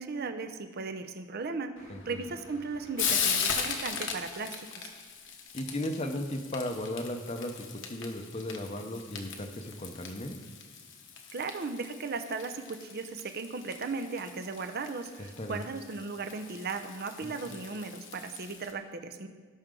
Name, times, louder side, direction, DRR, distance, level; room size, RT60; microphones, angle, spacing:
voice 1, 0.0-4.5 4.8-4.9 11.3-19.3, right 4 dB, 45° right, 7 dB, 0.7 m, -37 dB
Frying (food), 1.8-18.7, left 6 dB, 55° left, 1.1 m, -38 dB
voice 2, 1.9-2.2 5.5-10.4 15.4-15.6 17.2-17.3, left 1 dB, 30° left, 6 dB, 0.8 m, -36 dB
17.5 x 6.2 x 3.8 m, 1.5 s
head